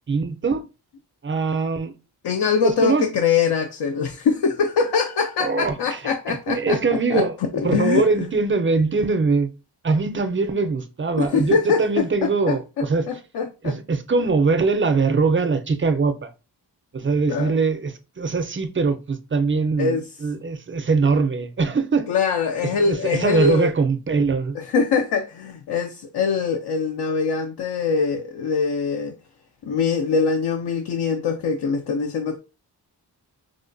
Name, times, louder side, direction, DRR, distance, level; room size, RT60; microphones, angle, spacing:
voice 1, 0.1-0.6 1.2-1.9 2.5-3.1 5.4-6.0 6.3-7.4 7.6-9.5 9.8-13.1 13.6-16.3 16.9-22.1 22.6-24.6, right 4 dB, 30° right, 0.5 m, -22 dB
voice 2, 2.2-6.8 7.1-7.2 7.6-8.3 11.2-13.8 17.3-17.5 19.8-20.1 22.1-23.7 24.5-29.2 29.6-32.4, left 5 dB, 70° left, 0.5 m, -23 dB
4.8 x 2.2 x 2.5 m
wide cardioid pair, 85°, 41 cm